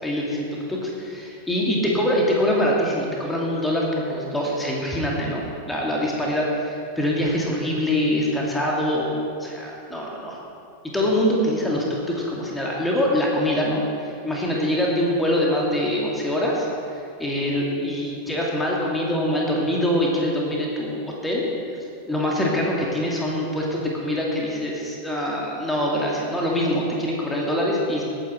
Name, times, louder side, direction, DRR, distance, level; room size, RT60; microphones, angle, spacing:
voice 1, 0.0-10.4 10.9-16.7 17.0-21.4 22.1-28.0, left 1 dB, 5° left, -3 dB, 2.3 m, -24 dB
19.0 x 9.3 x 4.4 m, 2.6 s
figure-of-eight pair, 90°, 0 cm